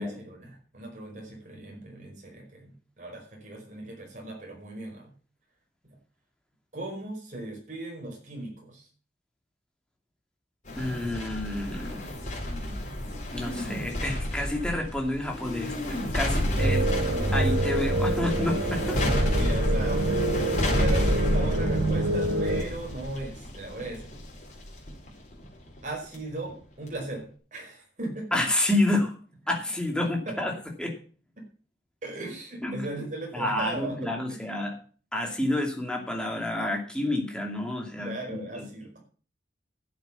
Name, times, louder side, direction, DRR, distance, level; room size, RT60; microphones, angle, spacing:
voice 1, 0.0-2.7 3.0-5.1 6.7-8.9 15.6-15.8 16.5-16.7 18.8-24.1 25.8-28.2 30.0-30.3 32.0-34.4 38.0-39.0, right 2 dB, 45° right, 0 dB, 5.1 m, -37 dB
sound 1, 10.7-26.1 26.5-26.6, left 1 dB, 45° left, 4.5 m, -30 dB
voice 2, 10.7-12.1 13.3-16.9 17.3-19.0 28.3-29.2 29.5-30.9 32.6-32.8 33.3-34.7 35.1-38.7, left 1 dB, 5° left, 1 dB, 2.6 m, -29 dB
sound 2, 16.6-22.6, right 2 dB, 90° right, 1.6 m, -27 dB
12.0 x 8.1 x 7.0 m, 0.41 s
head